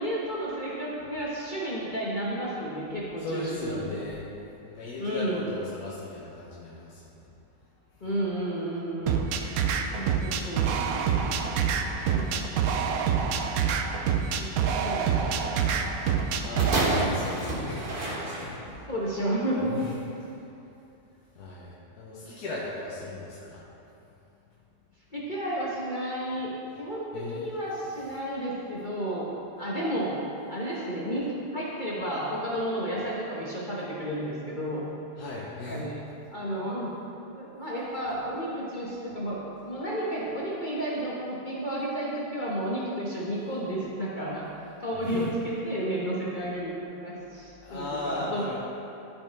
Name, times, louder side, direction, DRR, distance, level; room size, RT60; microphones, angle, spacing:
voice 1, 0.0-4.0 5.0-5.4 8.0-9.2 10.0-10.7 12.1-12.4 14.4-15.4 18.9-19.8 25.1-26.5 26.8-29.3 29.6-30.2 30.5-31.2 31.5-34.8 35.7-36.0 36.3-36.9 37.3-39.4 39.7-44.4 44.8-46.7 47.0-48.4, right 1 dB, 35° left, -6 dB, 1.0 m, -32 dB
voice 2, 3.2-4.2 4.6-7.0 11.7-12.7 13.2-13.3 15.8-15.9 16.4-18.8 19.6-20.0 21.4-23.7 27.1-27.5 35.2-35.8 45.0-45.3 47.6-48.6, left 2 dB, 70° left, -6 dB, 1.5 m, -37 dB
sound 1, 9.1-17.1, right 7 dB, 70° right, 0.9 m, -26 dB
sound 2, 16.6-18.8 19.6-19.7, right 1 dB, 35° right, 1.1 m, -29 dB
13.5 x 5.1 x 3.4 m, 2.8 s
omnidirectional pair, 1.8 m